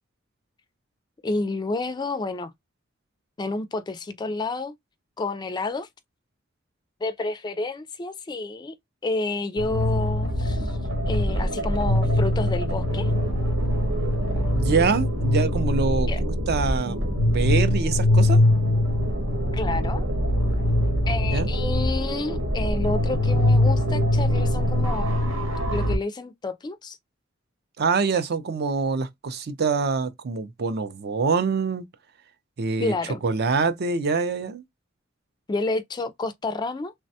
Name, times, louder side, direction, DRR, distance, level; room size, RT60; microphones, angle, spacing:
voice 1, 1.2-2.5 3.4-4.7 5.2-5.9 7.0-8.8 9.0-10.8 11.1-13.1 16.1-16.2 19.5-20.0 21.1-25.2 25.7-27.0 32.8-33.2 35.5-36.9, left 3 dB, 20° left, 0.3 m, -29 dB
sound 1, 9.6-26.0, left 1 dB, 85° right, 1.1 m, -23 dB
voice 2, 14.5-18.4 21.3-21.5 27.8-31.9 32.6-32.9 33.2-34.6, right 4 dB, 55° right, 0.4 m, -25 dB
3.2 x 2.1 x 2.7 m
head